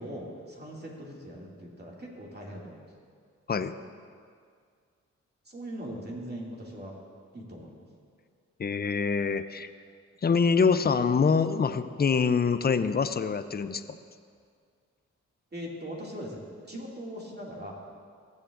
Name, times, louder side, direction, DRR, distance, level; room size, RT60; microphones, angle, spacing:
voice 1, 0.0-2.8 5.5-6.9 7.3-7.7 15.5-16.4 16.7-17.7, equal, 35° right, -3 dB, 2.4 m, -40 dB
voice 2, 8.6-9.7 10.2-14.0, left 5 dB, 30° left, 12 dB, 0.5 m, -25 dB
15.5 x 7.4 x 2.6 m, 2.1 s
supercardioid pair, 40°, 31 cm